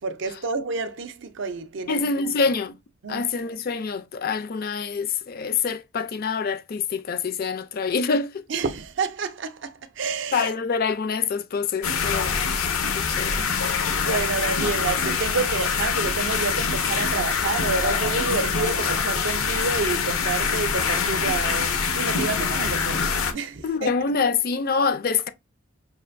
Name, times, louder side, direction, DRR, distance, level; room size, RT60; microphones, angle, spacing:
voice 1, 0.0-2.3 3.0-3.3 8.5-10.5 14.0-23.9, right 4 dB, 60° right, 0.5 m, -29 dB
voice 2, 1.9-2.8 3.1-8.5 10.3-13.6 23.6-25.3, left 5 dB, 45° left, 0.4 m, -26 dB
sound 1, 11.8-23.3, left 5 dB, 85° left, 0.7 m, -24 dB
5.3 x 2.5 x 2.5 m
head